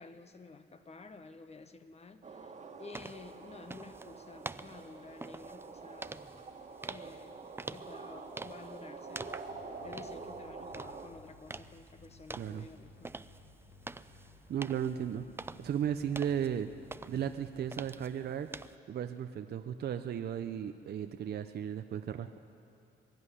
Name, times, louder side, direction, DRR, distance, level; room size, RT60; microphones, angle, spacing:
voice 1, 0.0-2.5 2.8-6.3 6.8-13.2, left 3 dB, 30° left, 9 dB, 1.2 m, -52 dB
sound 1, 2.2-11.1, right 4 dB, 35° right, 1.8 m, -47 dB
sound 2, 2.9-18.8, right 3 dB, 10° right, 0.4 m, -48 dB
sound 3, 9.5-17.7, left 3 dB, 65° left, 2.7 m, -59 dB
voice 2, 12.4-12.7 14.5-15.3 15.6-16.7 17.1-18.5 18.9-22.4, right 9 dB, 55° right, 8 dB, 0.7 m, -35 dB
22.0 x 12.0 x 9.9 m, 2.8 s
cardioid pair, 90°, 20 cm